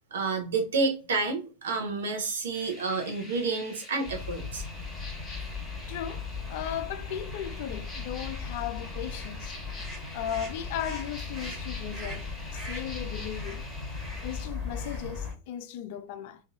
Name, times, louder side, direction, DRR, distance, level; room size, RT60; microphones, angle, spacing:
voice 1, 0.0-4.6, right 4 dB, 65° right, 0.9 m, -29 dB
sound 1, 2.5-14.5, left 1 dB, 10° left, 1.1 m, -46 dB
sound 2, 4.0-15.3, left 4 dB, 10° right, 1.4 m, -37 dB
voice 2, 5.9-9.5 10.1-13.6 14.2-16.4, left 10 dB, 50° left, 0.3 m, -36 dB
3.9 x 2.6 x 2.3 m
figure-of-eight pair, 90°, 0 cm